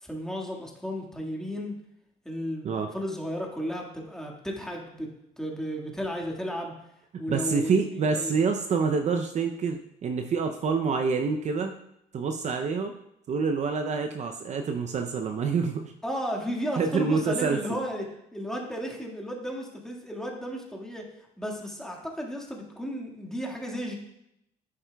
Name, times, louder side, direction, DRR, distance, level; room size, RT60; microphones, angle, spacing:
voice 1, 0.0-1.7 2.3-5.1 5.4-6.7 7.2-8.3 16.0-23.9, equal, 5° left, -1 dB, 1.8 m, -34 dB
voice 2, 7.3-11.8 12.1-12.9 13.3-15.8 16.8-17.6, right 5 dB, 45° right, 5 dB, 0.6 m, -27 dB
11.0 x 8.5 x 2.3 m, 0.82 s
cardioid pair, 110°, 17 cm